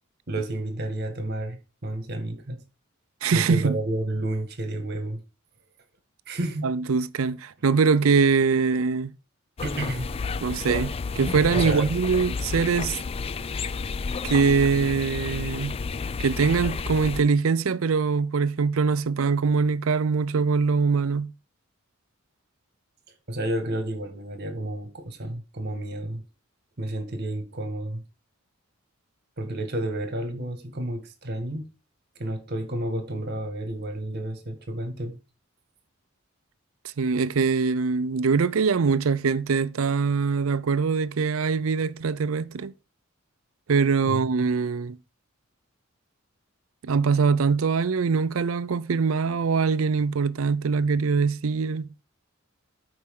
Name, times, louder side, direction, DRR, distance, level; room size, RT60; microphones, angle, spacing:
voice 1, 0.3-2.6 3.3-5.2 6.3-6.7 9.6-10.1 11.5-12.0 23.3-26.2 26.8-28.0 29.4-31.7 32.2-35.2 44.0-44.2, right 1 dB, 50° right, 1.8 m, -31 dB
voice 2, 3.2-3.8 6.6-9.1 10.4-13.0 14.2-15.7 16.2-21.3 37.0-42.7 43.7-45.0 46.8-51.9, right 5 dB, 85° right, 0.5 m, -23 dB
sound 1, 9.6-17.2, left 4 dB, 30° left, 0.3 m, -31 dB
12.0 x 4.8 x 3.8 m
head